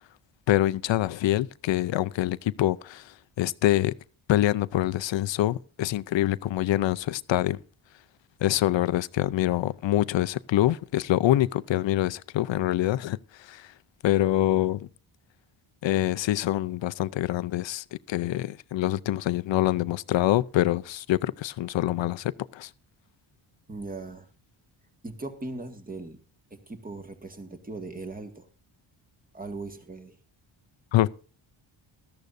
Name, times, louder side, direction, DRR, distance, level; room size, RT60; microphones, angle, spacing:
voice 1, 0.5-3.9 4.3-7.6 8.4-13.7 14.0-14.9 15.8-22.7 30.9-31.1, left 14 dB, 65° left, 0.6 m, -25 dB
voice 2, 23.7-24.3 25.0-26.2 26.5-28.5 29.3-30.2, right 3 dB, 15° right, 1.8 m, -39 dB
17.5 x 13.5 x 2.6 m
cardioid pair, 110°, 49 cm